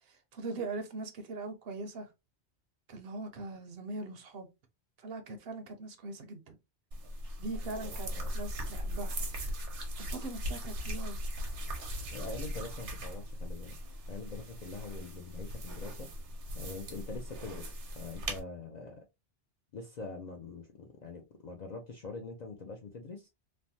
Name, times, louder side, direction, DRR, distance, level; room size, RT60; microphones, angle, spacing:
voice 1, 0.1-2.1 2.9-4.5 5.0-6.6 7.4-9.1 10.0-11.3, right 3 dB, 65° right, 0.8 m, -41 dB
sound 1, 6.9-18.4, equal, 85° right, 1.1 m, -39 dB
voice 2, 7.6-8.3 12.1-13.7 14.1-16.1 16.5-19.1 19.7-23.3, left 4 dB, 55° left, 0.5 m, -44 dB
3.2 x 2.0 x 2.6 m
omnidirectional pair, 1.2 m